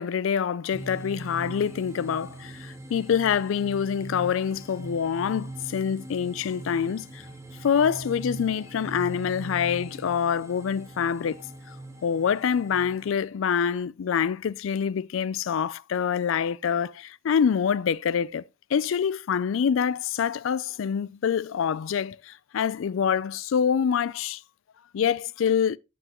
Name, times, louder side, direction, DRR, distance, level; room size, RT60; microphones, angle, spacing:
voice 1, 0.0-7.2 7.6-11.4 12.0-18.4 18.7-24.4 24.9-25.8, left 7 dB, 75° left, 0.4 m, -26 dB
sound 1, 0.7-13.1, right 2 dB, 15° right, 1.1 m, -41 dB
8.9 x 6.0 x 2.9 m
head